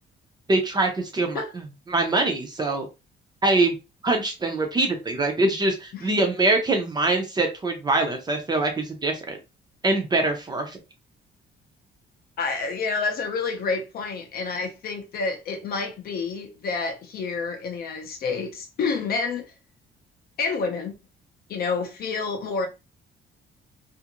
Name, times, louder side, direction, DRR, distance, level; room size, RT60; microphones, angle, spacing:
voice 1, 0.5-1.4 1.9-2.9 3.4-3.8 4.0-9.4 9.8-10.8, right 2 dB, 20° right, 0.5 m, -23 dB
voice 2, 12.4-19.5 20.4-20.9 21.5-22.7, left 4 dB, 50° left, 0.5 m, -29 dB
2.5 x 2.5 x 2.8 m
cardioid pair, 180°, 20 cm